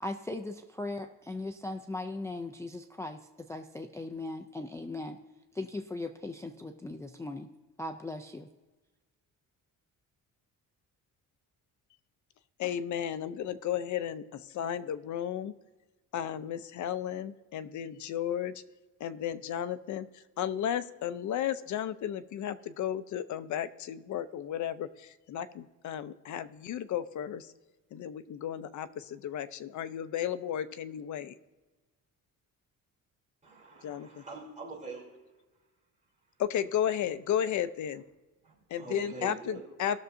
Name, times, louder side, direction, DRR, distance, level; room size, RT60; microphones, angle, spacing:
voice 1, 0.0-5.2 5.5-7.5 7.8-8.5, left 2 dB, 10° left, 6 dB, 0.3 m, -38 dB
voice 2, 12.6-15.5 16.1-18.5 19.0-20.1 20.4-27.5 27.9-31.3 33.8-34.1 36.4-38.0 38.7-40.0, left 10 dB, 60° left, 13 dB, 0.5 m, -34 dB
voice 3, 33.4-35.1 38.4-39.7, right 3 dB, 25° right, -5 dB, 3.2 m, -44 dB
18.5 x 6.6 x 2.6 m, 1.2 s
cardioid pair, 155°, 33 cm